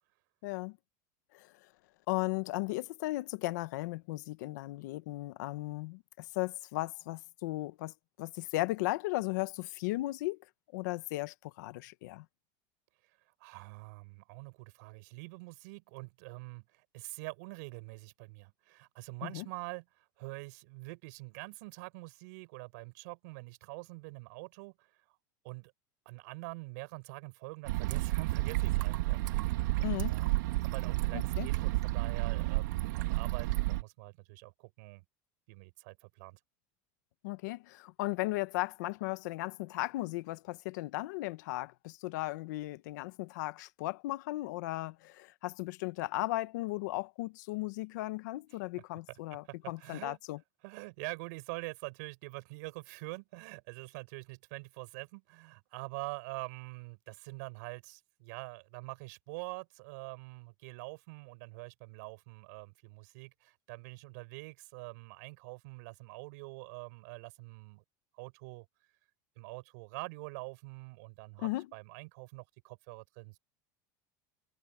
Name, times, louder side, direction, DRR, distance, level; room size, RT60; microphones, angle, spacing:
voice 1, 0.4-0.8 1.3-1.5 2.1-10.4 10.7-12.2 19.2-19.5 29.8-30.1 31.1-31.5 37.2-50.4 71.4-71.7, left 19 dB, 80° left, 1.3 m, -36 dB
voice 2, 13.4-25.2 25.4-25.7 26.0-29.4 30.1-30.3 30.6-35.0 35.5-36.4 49.1-49.2 49.4-50.2 50.6-67.8 68.1-68.6 69.4-73.4, right 27 dB, 75° right, 6.6 m, -45 dB
sound 1, 27.6-33.8, right 19 dB, 90° right, 3.1 m, -31 dB
supercardioid pair, 150°, 10 cm